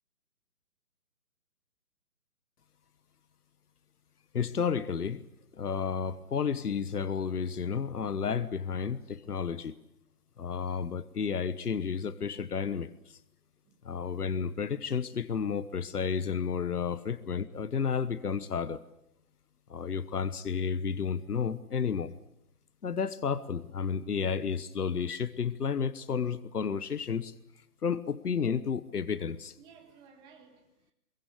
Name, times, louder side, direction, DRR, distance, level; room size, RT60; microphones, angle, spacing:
voice 1, 4.3-5.2 5.5-9.7 10.4-12.9 13.8-18.8 19.7-22.1 22.8-27.3 27.8-29.5, left 6 dB, 75° left, 1.3 m, -32 dB
voice 2, 13.6-14.1 29.6-30.9, right 6 dB, 10° right, 1.7 m, -57 dB
23.0 x 23.0 x 8.5 m
hypercardioid pair, 160°, 47 cm